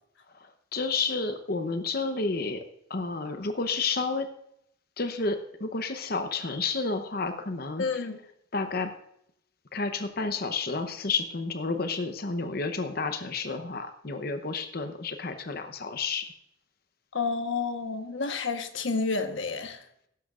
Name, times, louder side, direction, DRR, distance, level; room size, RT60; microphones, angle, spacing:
voice 1, 0.7-2.6 2.9-4.3 5.0-8.1 8.5-8.9 9.7-16.2, left 4 dB, 50° left, 8 dB, 0.8 m, -30 dB
voice 2, 7.8-8.2 17.1-19.8, left 4 dB, 70° left, 7 dB, 1.2 m, -30 dB
16.0 x 12.5 x 2.5 m, 0.75 s
head